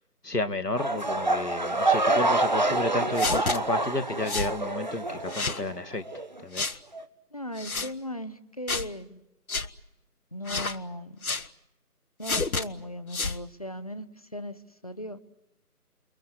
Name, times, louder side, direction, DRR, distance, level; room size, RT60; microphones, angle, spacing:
voice 1, 0.2-6.0 6.4-6.7, left 2 dB, 85° left, 8 dB, 2.2 m, -32 dB
sound 1, 0.8-5.8 6.1-6.4 6.9-7.0, right 2 dB, 30° right, 1.1 m, -27 dB
sound 2, 3.2-3.6 4.3-4.5 5.3-5.6 6.5-6.8 7.6-7.9 8.7-8.9 9.5-9.7 10.5-10.8 11.2-11.5 12.2-12.7 13.1-13.4, left 3 dB, 65° left, 1.4 m, -29 dB
voice 2, 7.3-9.2 10.3-11.2 12.2-15.2, left 1 dB, 25° left, 12 dB, 0.9 m, -38 dB
29.5 x 23.0 x 8.0 m, 0.88 s
figure-of-eight pair, 160°, 46 cm